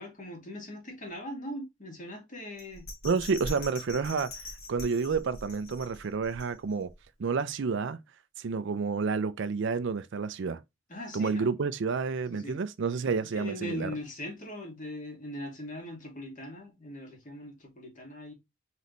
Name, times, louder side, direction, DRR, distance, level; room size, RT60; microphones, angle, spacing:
voice 1, 0.0-2.9 10.9-11.5 12.3-12.6 13.2-18.3, left 1 dB, 40° left, 1.9 m, -40 dB
Bell, 2.6-6.9 7.3-7.4, left 1 dB, 90° left, 1.9 m, -43 dB
voice 2, 3.0-4.3 4.7-6.9 7.2-8.0 8.4-10.6 11.1-13.9, right 5 dB, 60° right, 0.4 m, -29 dB
4.1 x 4.0 x 3.1 m
head